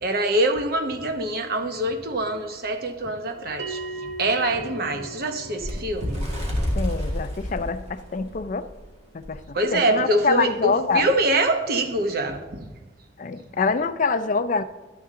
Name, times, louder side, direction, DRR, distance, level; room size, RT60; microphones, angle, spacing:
voice 1, 0.0-6.6 9.5-12.7, right 1 dB, 60° right, 1.0 m, -25 dB
Bell, 3.6-8.6, right 3 dB, 85° right, 0.8 m, -39 dB
Bird, 5.6-8.8 9.2-9.4 9.7-9.9 10.7-10.8, equal, 40° right, 2.0 m, -28 dB
voice 2, 6.8-8.7 9.1-11.1 13.2-14.6, left 4 dB, 45° left, 0.4 m, -25 dB
12.0 x 7.8 x 3.7 m
head